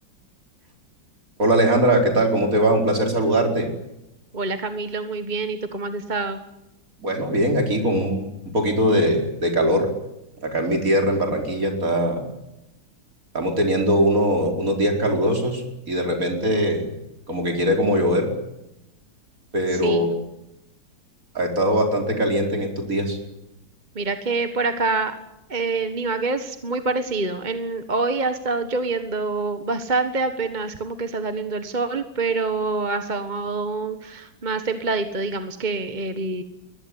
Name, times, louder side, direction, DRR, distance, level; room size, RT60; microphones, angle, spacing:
voice 1, 1.4-3.7 7.0-9.9 10.4-12.3 13.3-16.9 17.3-18.3 19.5-20.1 21.4-23.2, right 1 dB, 40° right, 3 dB, 5.2 m, -21 dB
voice 2, 4.3-6.4 19.7-20.0 23.9-25.1 25.5-36.4, right 3 dB, 25° right, 9 dB, 1.3 m, -26 dB
22.5 x 19.0 x 9.9 m, 0.88 s
omnidirectional pair, 2.1 m